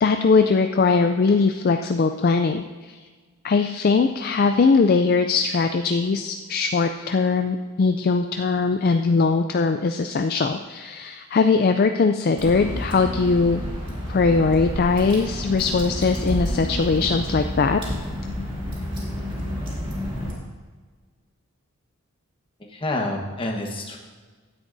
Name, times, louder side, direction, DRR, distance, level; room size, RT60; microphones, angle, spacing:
voice 1, 0.0-3.0 3.4-13.6 14.1-18.1, left 4 dB, 40° left, 7 dB, 0.3 m, -20 dB
Water / Drip, 12.4-20.3, equal, 25° right, 2.3 m, -30 dB
voice 2, 22.7-24.0, left 2 dB, 25° left, 2 dB, 1.2 m, -28 dB
15.5 x 9.7 x 2.6 m, 1.4 s
head